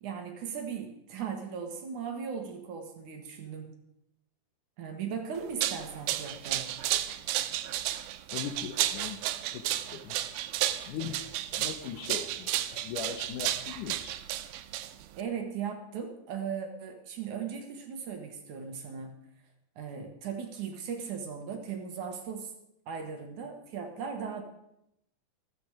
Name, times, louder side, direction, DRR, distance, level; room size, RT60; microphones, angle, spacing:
voice 1, 0.0-3.7 4.8-6.8 15.2-19.1 19.8-22.5 22.9-24.4, right 6 dB, 60° right, 4 dB, 2.7 m, -38 dB
sound 1, 5.4-15.2, right 13 dB, 90° right, 2.6 m, -32 dB
voice 2, 8.3-9.2 9.5-10.2 10.9-11.2 11.6-14.2, left 8 dB, 70° left, 7 dB, 2.3 m, -39 dB
14.5 x 14.0 x 5.0 m, 0.81 s
omnidirectional pair, 4.2 m